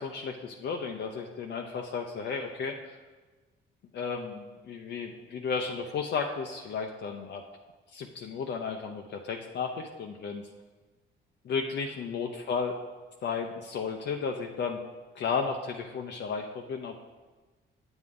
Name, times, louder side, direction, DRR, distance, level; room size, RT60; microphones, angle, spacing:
voice 1, 0.0-2.7 3.9-7.4 7.9-10.4 11.4-12.8 13.2-14.8 15.1-17.0, left 5 dB, 60° left, 2 dB, 0.7 m, -33 dB
8.1 x 7.9 x 3.7 m, 1.3 s
cardioid pair, 90°, 20 cm